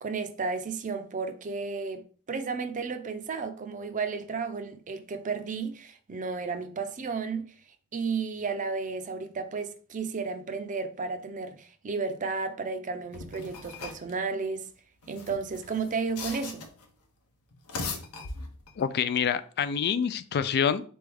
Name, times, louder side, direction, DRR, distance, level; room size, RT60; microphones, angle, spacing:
voice 1, 0.0-7.5 7.9-14.7 15.1-16.7, right 4 dB, 35° right, 0.5 m, -33 dB
sound 1, 13.1-14.1 15.0-16.9 17.5-18.8, left 4 dB, 85° left, 0.9 m, -39 dB
voice 2, 18.8-20.8, left 7 dB, 50° left, 0.3 m, -26 dB
4.1 x 3.5 x 3.4 m
head